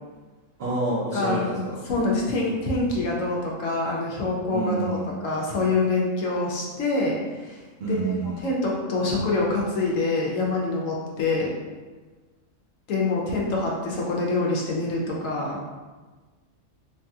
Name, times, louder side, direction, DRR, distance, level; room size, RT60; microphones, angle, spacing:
voice 1, 0.6-1.8 4.5-5.1 7.8-8.4, right 2 dB, 55° right, -7 dB, 0.7 m, -28 dB
voice 2, 1.1-5.0 5.2-7.6 7.9-8.1 8.4-11.5 12.9-15.6, left 3 dB, 80° left, -2 dB, 1.0 m, -25 dB
3.2 x 2.7 x 2.3 m, 1.3 s
omnidirectional pair, 1.4 m